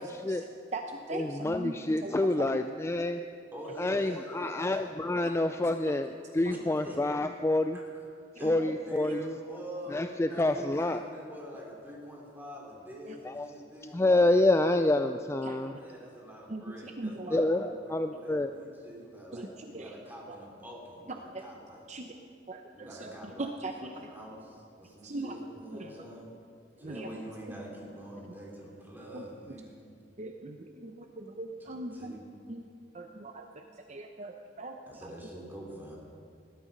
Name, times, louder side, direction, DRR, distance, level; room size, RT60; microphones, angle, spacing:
voice 1, 0.0-2.6 3.6-3.8 5.2-5.3 5.8-6.0 6.3-6.6 8.4-8.7 9.0-9.2 13.1-13.2 14.6-14.7 15.4-15.8 16.5-17.4 18.1-18.2 19.3-20.0 20.3-20.4 21.1-21.4 21.9-22.1 22.5-24.0 25.0-25.4 25.7-26.1 26.8-27.1 27.5-27.6 28.2-28.3 29.1-29.6 30.2-32.2 32.5-32.6 32.9-35.1, right 2 dB, 40° right, 4 dB, 0.7 m, -41 dB
voice 2, 1.4-3.2 3.8-6.1 6.4-7.8 8.4-9.3 9.9-11.0 13.2-13.5 13.9-15.7 17.3-17.6 17.9-18.5, left 2 dB, 15° left, 8 dB, 0.3 m, -27 dB
voice 3, 3.5-4.9 6.5-7.0 7.7-8.0 8.4-8.6 8.9-14.0 15.8-21.8 22.7-23.5 24.1-24.4 24.8-26.3 26.8-29.8 32.0-32.2 34.9-36.0, right 1 dB, 10° right, -2 dB, 3.1 m, -45 dB
19.0 x 12.5 x 5.3 m, 2.4 s
head